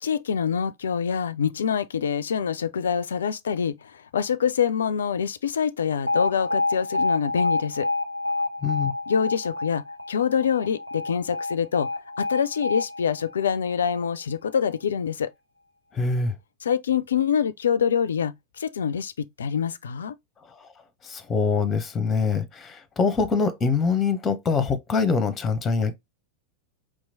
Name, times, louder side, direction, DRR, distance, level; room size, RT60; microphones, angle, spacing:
voice 1, 0.0-7.9 9.1-11.9 12.2-15.3 16.6-20.2, left 7 dB, 65° left, 0.3 m, -25 dB
Alarm, 6.1-14.1, left 2 dB, 90° right, 0.4 m, -28 dB
voice 2, 8.6-8.9 15.9-16.3 20.5-20.7 21.0-26.0, left 5 dB, 20° left, 0.7 m, -24 dB
4.7 x 3.0 x 2.6 m
figure-of-eight pair, 90°, 0 cm